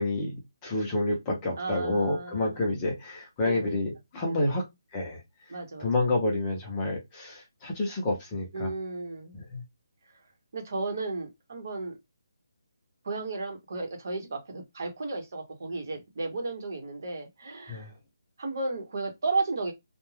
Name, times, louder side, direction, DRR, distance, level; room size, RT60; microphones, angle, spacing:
voice 1, 0.0-4.6 4.9-5.2 5.8-8.7 9.3-9.6 17.7-17.9, left 2 dB, 15° left, 0.6 m, -29 dB
voice 2, 1.6-2.6 3.4-3.8 4.2-4.6 5.5-5.9 8.5-9.3 10.1-10.2 10.5-12.0 13.0-17.9 18.4-19.7, right 3 dB, 45° right, 1.0 m, -34 dB
2.3 x 2.2 x 3.2 m
hypercardioid pair, 170°, 2 cm